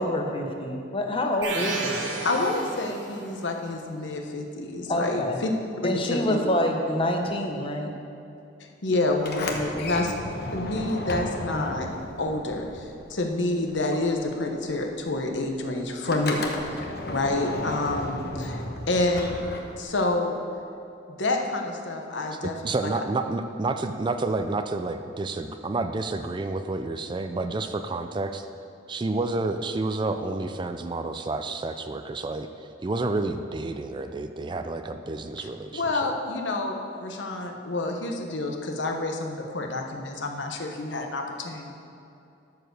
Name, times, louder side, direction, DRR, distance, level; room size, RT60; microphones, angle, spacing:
voice 1, 0.0-2.3 4.9-5.4 5.8-7.9 9.7-9.9 11.5-11.6, left 1 dB, 30° left, 2 dB, 0.9 m, -27 dB
sound 1, 1.4-3.3, right 3 dB, 75° right, 1.6 m, -32 dB
voice 2, 2.2-5.5 5.8-6.4 8.8-10.2 10.5-11.9 12.2-16.5 16.8-19.4 19.8-20.4 21.1-22.6 22.8-22.9 35.4-41.7, left 2 dB, 75° left, 2 dB, 1.1 m, -28 dB
Sliding door, 9.1-13.4 13.7-20.1, left 1 dB, 55° left, 1.0 m, -34 dB
voice 3, 22.4-28.5 28.9-36.1, right 2 dB, 25° right, 8 dB, 0.4 m, -30 dB
12.5 x 4.9 x 6.5 m, 2.6 s
head